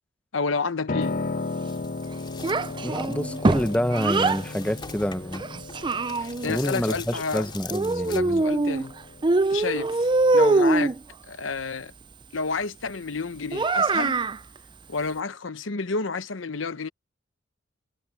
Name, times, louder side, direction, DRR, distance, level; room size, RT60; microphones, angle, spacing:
voice 1, 0.3-1.2 6.2-7.5 7.9-8.9 9.5-10.0 10.3-11.0 11.3-11.9 12.3-14.2 14.9-16.9, left 4 dB, 75° left, 1.0 m, -30 dB
Piano, 0.9-10.8, left 3 dB, 45° left, 0.8 m, -35 dB
sound 1, 1.7-8.2, left 5 dB, 25° left, 3.7 m, -43 dB
Child speech kid speaking, 2.4-4.4 5.3-6.6 7.7-8.9 9.2-11.0 13.5-14.4, right 3 dB, 25° right, 0.5 m, -23 dB
voice 2, 2.8-5.4 6.5-8.4, equal, 5° left, 0.9 m, -27 dB
head